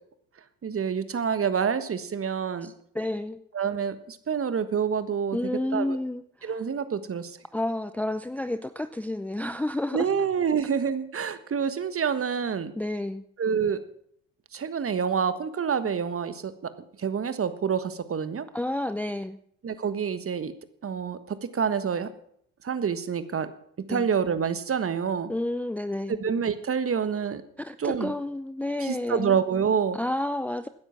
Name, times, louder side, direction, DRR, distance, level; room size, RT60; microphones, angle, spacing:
voice 1, 0.6-2.7 3.5-5.4 5.7-6.0 6.4-7.4 9.9-12.7 13.4-13.8 14.5-16.7 17.0-18.5 19.6-20.5 20.8-22.1 22.6-23.5 23.9-25.3 26.2-27.4 27.8-28.1 28.8-30.0, right 7 dB, 35° right, 12 dB, 1.4 m, -27 dB
voice 2, 2.6-3.4 5.3-6.6 7.5-10.1 12.7-13.2 18.5-19.4 23.9-24.1 25.3-26.2 27.6-29.4 29.9-30.7, left 1 dB, 5° left, 12 dB, 0.6 m, -30 dB
15.5 x 9.9 x 5.8 m, 0.67 s
hypercardioid pair, 60°, 40 cm